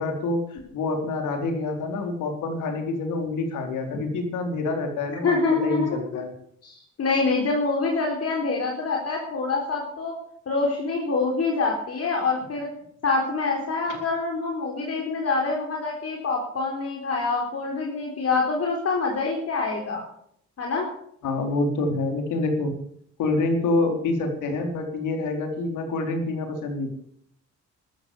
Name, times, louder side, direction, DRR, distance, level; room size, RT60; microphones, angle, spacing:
voice 1, 0.0-5.3 5.6-6.3 13.9-14.0 21.2-22.7 23.2-26.9, left 2 dB, 85° left, 4 dB, 4.3 m, -27 dB
voice 2, 5.2-6.0 6.6-10.1 10.5-12.7 13.0-20.0 20.6-20.9, left 4 dB, 55° left, 0 dB, 4.2 m, -25 dB
14.0 x 13.5 x 6.8 m, 0.68 s
cardioid pair, 90°, 30 cm